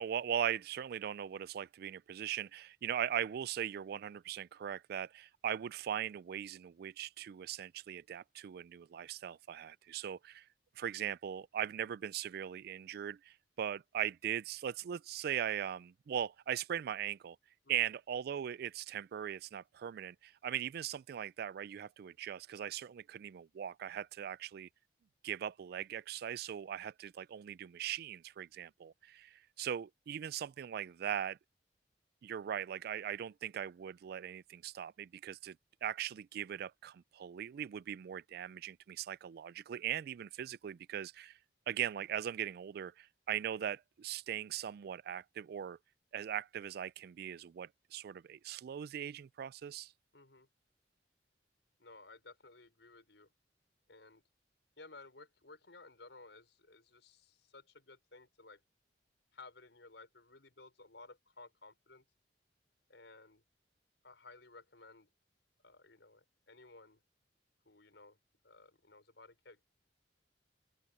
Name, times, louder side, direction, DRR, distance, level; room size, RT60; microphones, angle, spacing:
voice 1, 0.0-10.4 10.8-17.4 17.7-24.7 25.2-31.4 32.2-41.4 41.7-45.8 46.1-49.9, right 9 dB, 60° right, 0.3 m, -40 dB
voice 2, 50.1-50.5 51.8-53.3 53.9-54.2 54.8-58.6 59.3-62.0 62.9-63.4 64.0-65.1 65.6-67.0 67.7-68.2 68.4-69.6, left 3 dB, 85° left, 5.5 m, -57 dB
open air
head